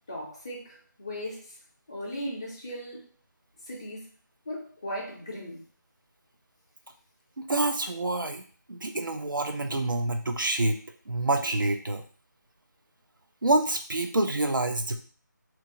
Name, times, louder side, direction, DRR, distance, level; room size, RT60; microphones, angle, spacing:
voice 1, 0.1-1.6 1.9-3.1 3.7-4.1 4.5-5.6, equal, 15° left, -4 dB, 0.4 m, -37 dB
voice 2, 7.5-8.4 8.7-10.8 11.1-12.0 13.4-15.0, right 2 dB, 85° right, 5 dB, 0.5 m, -27 dB
2.8 x 2.3 x 2.7 m, 0.40 s
figure-of-eight pair, 160°, 11 cm